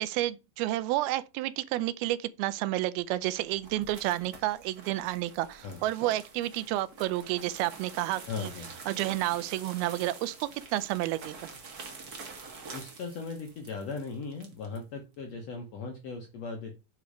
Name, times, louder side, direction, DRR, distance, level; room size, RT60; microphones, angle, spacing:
voice 1, 0.0-8.5 8.9-11.5, right 15 dB, 85° right, 2.5 m, -30 dB
sound 1, 3.1-14.8, right 4 dB, 65° right, 0.9 m, -47 dB
voice 2, 8.3-8.7 12.7-16.7, left 4 dB, 70° left, 1.5 m, -38 dB
8.5 x 4.6 x 5.0 m
omnidirectional pair, 4.4 m